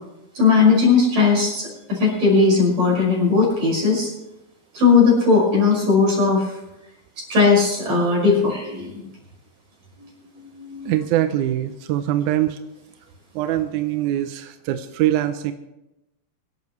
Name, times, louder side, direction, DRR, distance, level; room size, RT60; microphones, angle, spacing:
voice 1, 0.4-4.1 4.7-6.5 7.3-8.9 10.0-10.1 10.3-11.1, left 4 dB, 55° right, -3 dB, 6.9 m, -18 dB
voice 2, 10.8-12.6 13.4-15.5, right 13 dB, 75° right, 9 dB, 1.9 m, -23 dB
23.5 x 12.0 x 3.2 m, 0.93 s
omnidirectional pair, 4.0 m